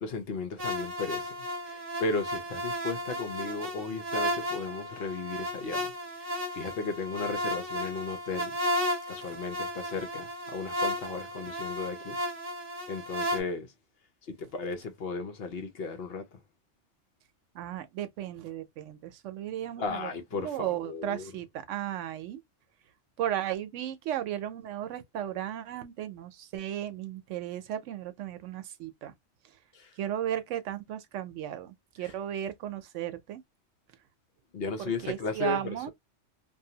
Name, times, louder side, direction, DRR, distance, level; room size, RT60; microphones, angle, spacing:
voice 1, 0.0-1.3 1.7-5.8 6.2-8.5 9.1-12.2 12.9-13.7 14.3-16.2 19.8-21.3 29.7-29.9 32.0-32.1 34.5-35.6, left 4 dB, 60° left, 0.8 m, -35 dB
sound 1, 0.6-13.4, equal, 35° right, 0.9 m, -34 dB
voice 2, 17.5-22.4 23.2-29.1 30.0-33.4 34.8-35.9, right 11 dB, 85° right, 0.9 m, -35 dB
2.7 x 2.2 x 2.7 m
omnidirectional pair, 1.2 m